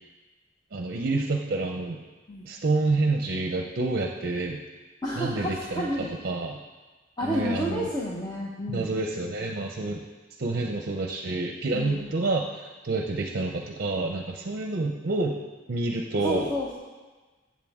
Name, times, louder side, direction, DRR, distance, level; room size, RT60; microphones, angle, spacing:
voice 1, 0.7-2.0 2.4-4.6 5.2-5.9 6.2-6.6 7.2-7.9 8.7-10.0 10.4-15.3 15.7-16.4, right 2 dB, 55° right, 2 dB, 0.6 m, -28 dB
voice 2, 5.0-6.1 7.2-8.9 11.7-12.1 16.2-16.7, equal, 20° left, -4 dB, 1.1 m, -30 dB
15.0 x 7.5 x 3.6 m, 1.3 s
head